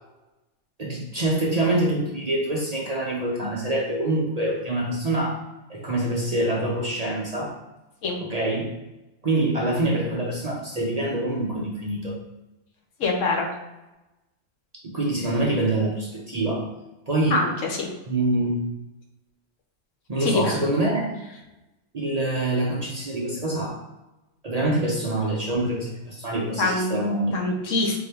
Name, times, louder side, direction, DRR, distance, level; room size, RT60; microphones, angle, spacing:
voice 1, 0.8-5.4 5.7-7.5 8.2-8.7 9.2-12.2 14.8-16.7 17.1-17.4 18.1-18.6 20.1-21.1 21.9-23.8 24.4-27.4, right 1 dB, 40° right, -3 dB, 0.6 m, -25 dB
voice 2, 13.0-13.5 17.3-17.9 20.2-20.6 26.6-27.0 27.3-28.0, left 3 dB, 75° left, 0 dB, 1.2 m, -24 dB
4.5 x 2.7 x 3.4 m, 1.0 s
omnidirectional pair, 1.3 m